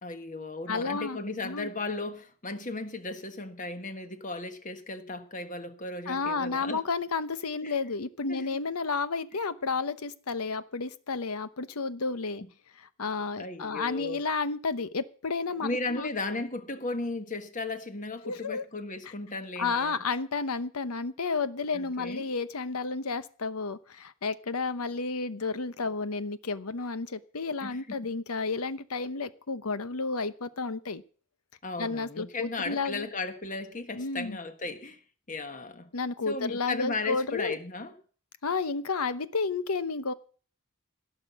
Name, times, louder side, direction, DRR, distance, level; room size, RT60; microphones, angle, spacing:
voice 1, 0.0-6.8 7.6-7.7 8.3-8.5 13.4-14.2 15.6-20.0 21.7-22.3 27.6-28.0 31.6-35.0 35.3-35.9 36.3-37.9, left 3 dB, 35° left, 1.5 m, -36 dB
voice 2, 0.7-1.7 6.1-12.4 12.8-16.1 18.2-18.6 19.6-31.0 31.8-33.1 33.9-34.4 35.9-37.6 38.4-40.1, left 4 dB, 90° left, 0.9 m, -31 dB
16.5 x 6.0 x 8.2 m
head